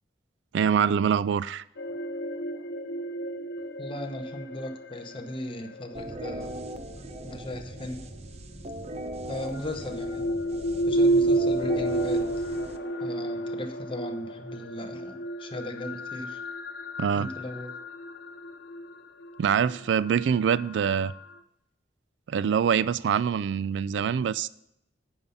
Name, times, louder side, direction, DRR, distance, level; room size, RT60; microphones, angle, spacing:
voice 1, 0.5-1.6 17.0-17.3 19.4-21.1 22.3-24.5, right 7 dB, 85° right, 18 dB, 0.3 m, -24 dB
sound 1, 1.8-7.8 8.9-21.4, right 1 dB, 65° left, 0.6 m, -31 dB
voice 2, 3.8-6.5 7.2-8.0 9.3-10.3 10.8-12.3 13.0-16.4 17.1-17.7, left 1 dB, 30° left, 6 dB, 0.9 m, -37 dB
sound 2, 5.9-13.6, right 1 dB, 35° right, 0.6 m, -40 dB
9.1 x 5.6 x 6.9 m, 0.79 s
head